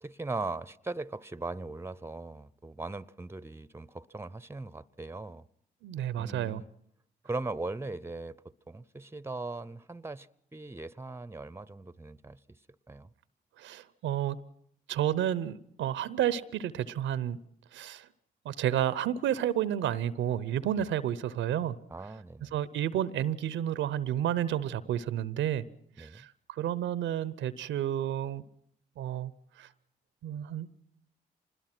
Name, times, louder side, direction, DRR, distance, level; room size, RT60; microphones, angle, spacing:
voice 1, 0.0-5.5 6.2-6.7 7.2-8.4 8.7-12.4 12.9-13.1 20.8-20.9 21.9-22.5 26.0-26.3, right 3 dB, 15° right, 0.8 m, -39 dB
voice 2, 5.8-6.6 13.6-14.4 14.9-17.4 17.7-18.1 18.4-21.8 22.5-25.6 26.0-28.4 29.0-29.3 29.6-29.7 30.2-30.7, right 11 dB, 80° right, 0.8 m, -31 dB
25.5 x 20.5 x 6.1 m
hypercardioid pair, 40°, 20 cm